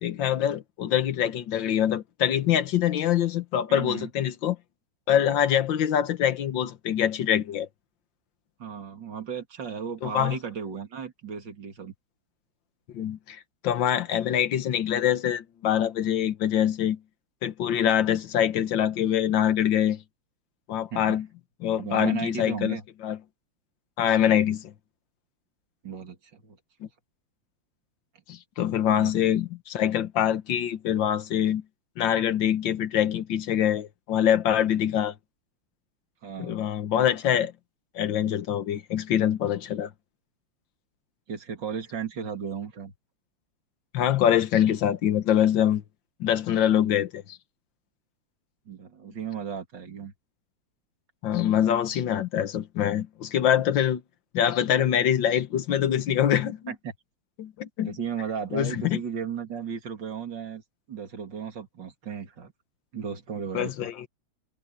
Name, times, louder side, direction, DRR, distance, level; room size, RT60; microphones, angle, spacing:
voice 1, 0.0-4.6 5.1-7.7 10.0-10.4 12.9-17.0 17.4-20.0 20.7-21.3 21.6-22.8 23.0-23.2 24.0-24.7 28.3-31.6 32.0-35.1 36.4-37.5 37.9-39.9 43.9-45.8 46.2-47.4 51.2-54.0 54.3-56.6 57.4-57.9 58.5-59.0 63.5-64.1, left 10 dB, 65° left, 1.8 m, -24 dB
voice 2, 3.7-4.1 8.6-11.9 20.9-21.2 21.8-22.8 25.8-26.6 26.8-26.9 28.9-29.2 36.2-36.6 41.3-42.9 48.7-50.1 56.7-56.8 57.8-60.6 60.9-62.5 62.9-63.9, right 7 dB, 55° right, 3.2 m, -35 dB
omnidirectional pair, 2.4 m